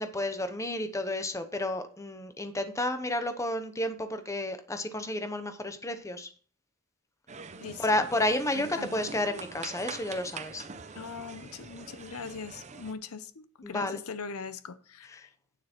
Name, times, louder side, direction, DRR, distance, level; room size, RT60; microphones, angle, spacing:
voice 1, 0.0-6.3 7.8-10.6 13.6-14.0, left 1 dB, 15° left, 0.9 m, -31 dB
sound 1, 7.3-12.9, right 4 dB, 30° right, 0.7 m, -44 dB
voice 2, 7.6-8.0 8.5-9.1 10.9-15.3, left 5 dB, 75° left, 0.7 m, -41 dB
9.5 x 7.1 x 4.4 m
head